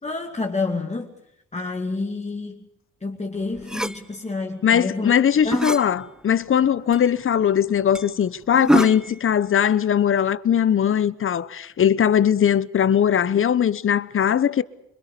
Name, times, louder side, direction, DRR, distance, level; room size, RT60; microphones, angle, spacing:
voice 1, 0.0-1.1 1.5-2.7 3.0-5.1 5.4-5.6, left 3 dB, 20° left, 2.5 m, -28 dB
sound 1, 3.6-4.0 5.3-5.9 6.4-6.5 6.9-7.0 7.4-7.5 7.9-8.1 8.5-9.2, equal, ahead, 0.9 m, -24 dB
voice 2, 4.6-14.6, left 9 dB, 45° left, 1.1 m, -20 dB
25.5 x 22.5 x 6.8 m
cardioid pair, 90°, 30 cm